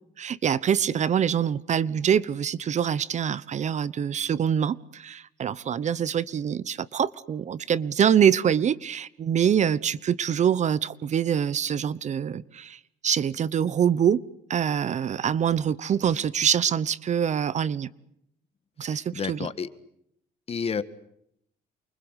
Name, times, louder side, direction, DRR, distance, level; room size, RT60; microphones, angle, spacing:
voice 1, 0.2-14.2 14.5-17.9 18.8-19.5, right 8 dB, 45° right, 20 dB, 1.0 m, -25 dB
voice 2, 18.8-19.7 20.5-20.8, left 6 dB, 35° left, 14 dB, 1.8 m, -31 dB
29.0 x 24.5 x 8.2 m, 0.75 s
cardioid pair, 110°, 17 cm